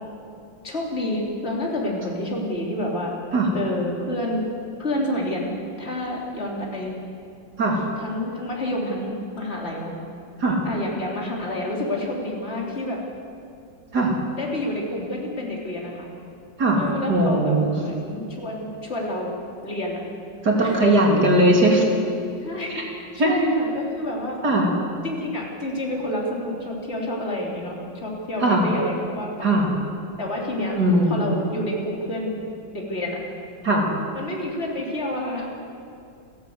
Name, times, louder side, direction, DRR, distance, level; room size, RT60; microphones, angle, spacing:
voice 1, 0.6-3.1 3.5-4.5 4.8-5.5 5.8-7.0 8.0-10.0 10.7-13.0 14.3-16.1 16.7-19.4 19.6-20.0 20.6-20.8 22.4-24.4 25.0-29.6 30.2-30.8 31.1-32.4 32.7-33.2 34.1-35.5, left 1 dB, 35° left, -2 dB, 3.5 m, -29 dB
voice 2, 17.1-17.7 20.4-21.9 23.2-23.4 24.4-24.7 28.4-28.7 29.4-29.7 30.8-31.2 33.6-33.9, right 1 dB, 60° right, -1 dB, 3.7 m, -19 dB
29.0 x 11.5 x 7.9 m, 2.5 s
omnidirectional pair, 2.0 m